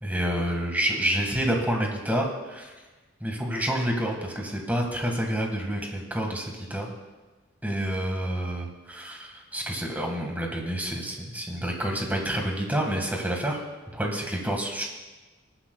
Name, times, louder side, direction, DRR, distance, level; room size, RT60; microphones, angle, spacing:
voice 1, 0.0-2.7 3.2-6.9 7.6-13.6 13.9-14.8, right 1 dB, 10° right, 1 dB, 1.7 m, -28 dB
20.5 x 10.0 x 2.3 m, 1.2 s
head